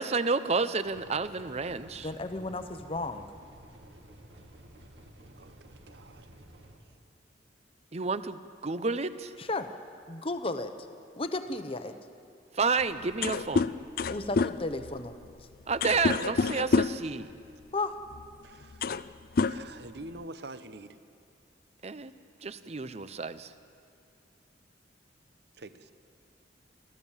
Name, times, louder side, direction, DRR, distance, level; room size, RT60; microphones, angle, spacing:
voice 1, 0.0-2.1 7.9-9.3 12.5-13.7 15.7-17.3 21.8-22.1 22.4-23.5, right 4 dB, 35° right, 13 dB, 0.7 m, -30 dB
sound 1, 0.8-6.8, right 1 dB, 85° right, 2.4 m, -52 dB
voice 2, 2.0-3.3 9.4-9.7 10.1-10.9 11.2-12.0 14.1-15.2 17.7-18.0, left 2 dB, 30° left, 8 dB, 0.8 m, -34 dB
voice 3, 5.3-6.3 18.4-18.9 19.4-21.0 25.6-25.9, right 2 dB, 65° right, 11 dB, 0.9 m, -46 dB
sound 2, 12.8-12.9 13.1-17.1 18.1-18.3 18.6-19.1 19.4-20.2, left 4 dB, 55° left, 0.5 m, -28 dB
28.5 x 14.5 x 7.3 m, 2.5 s
head